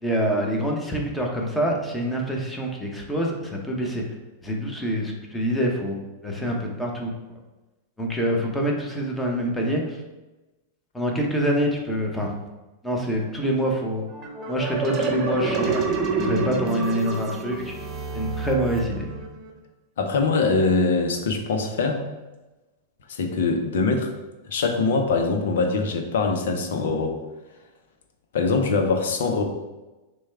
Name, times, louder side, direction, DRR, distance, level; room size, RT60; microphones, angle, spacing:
voice 1, 0.0-4.0 4.4-7.4 8.0-10.0 10.9-12.3 12.8-14.1 14.5-15.8 16.2-17.7 18.1-19.0, equal, 5° left, -1 dB, 1.0 m, -26 dB
sound 1, 14.1-19.5, right 4 dB, 35° right, 0.8 m, -28 dB
voice 2, 20.0-22.0 23.1-24.1 24.5-27.2 28.3-29.4, left 4 dB, 70° left, 4 dB, 0.7 m, -23 dB
6.2 x 2.3 x 3.5 m, 1.1 s
hypercardioid pair, 100°, 0 cm